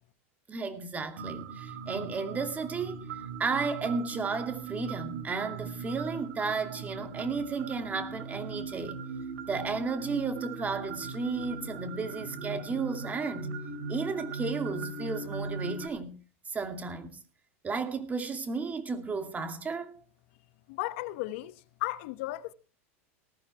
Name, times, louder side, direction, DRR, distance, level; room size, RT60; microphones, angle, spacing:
voice 1, 0.5-3.1 3.4-9.0 9.5-13.5 13.9-16.2 16.5-17.2 17.6-20.0, right 4 dB, 20° right, 2.5 m, -33 dB
sound 1, 1.2-15.9, right 4 dB, 75° right, 2.8 m, -39 dB
voice 2, 20.7-22.5, left 18 dB, 65° left, 1.1 m, -35 dB
19.0 x 14.5 x 3.4 m
hypercardioid pair, 115°, 7 cm